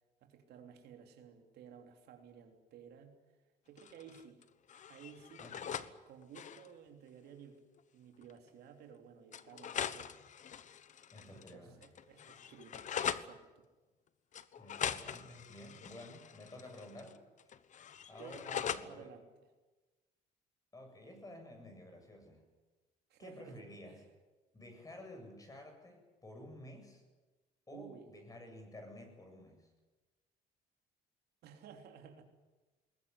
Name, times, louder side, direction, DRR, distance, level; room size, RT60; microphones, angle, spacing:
voice 1, 0.2-3.1 3.6-4.4 4.9-7.6 7.9-10.2 11.3-13.7 18.2-19.3 23.1-24.0 27.7-28.1 31.4-32.2, right 7 dB, 75° right, 4 dB, 3.3 m, -55 dB
sound 1, 3.8-4.4 4.7-5.9 6.2-6.7 7.8-7.9 8.2-8.3 9.3-11.5 11.8-13.3 14.3-17.1 17.4-18.9, left 8 dB, 45° left, 1.1 m, -42 dB
voice 2, 5.4-5.8 11.1-11.8 14.6-17.2 18.1-19.1 20.7-22.4 23.2-24.0 24.5-27.0 27.7-29.7, left 1 dB, 20° left, 4 dB, 8.0 m, -52 dB
21.0 x 19.5 x 9.8 m, 1.2 s
cardioid pair, 110°, 17 cm